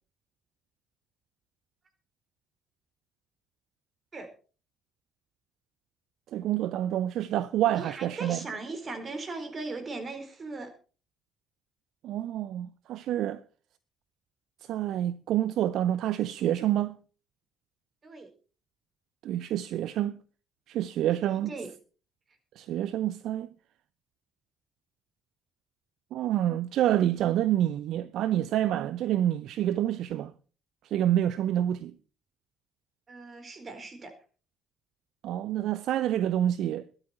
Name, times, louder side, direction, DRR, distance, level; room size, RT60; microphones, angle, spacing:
voice 1, 6.3-8.5 12.0-13.4 14.6-17.0 19.2-20.2 20.7-21.5 22.6-23.5 26.1-30.3 30.8-31.9 35.2-36.9, right 12 dB, 60° right, 0.6 m, -28 dB
voice 2, 7.7-10.7 18.0-18.3 21.5-21.7 33.1-34.1, right 3 dB, 40° right, 4.3 m, -38 dB
21.5 x 8.9 x 4.4 m
figure-of-eight pair, 45°, 0 cm